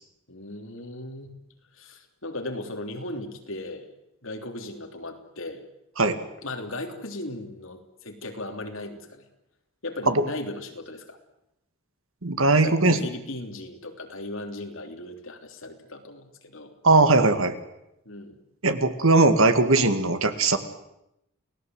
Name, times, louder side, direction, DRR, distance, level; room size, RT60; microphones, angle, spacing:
voice 1, 0.3-1.3 1.7-3.9 4.2-5.6 6.4-9.2 9.8-11.2 12.6-16.7 18.1-18.4, left 2 dB, 65° left, 4 dB, 3.4 m, -37 dB
voice 2, 12.2-13.0 16.8-17.5 18.6-20.6, right 3 dB, 70° right, 9 dB, 2.1 m, -19 dB
29.0 x 18.0 x 7.9 m, 0.84 s
head